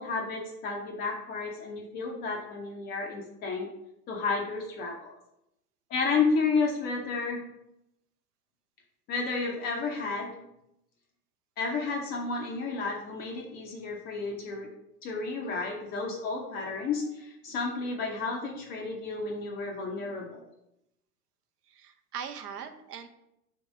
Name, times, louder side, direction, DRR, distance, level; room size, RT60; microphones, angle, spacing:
voice 1, 0.0-3.7 4.1-5.2 5.9-7.4 9.1-10.4 11.6-14.7 15.0-20.4, left 4 dB, 20° left, 1 dB, 0.5 m, -31 dB
voice 2, 21.7-23.1, right 7 dB, 65° right, 7 dB, 0.7 m, -40 dB
3.6 x 3.0 x 4.8 m, 0.84 s
figure-of-eight pair, 95°, 50 cm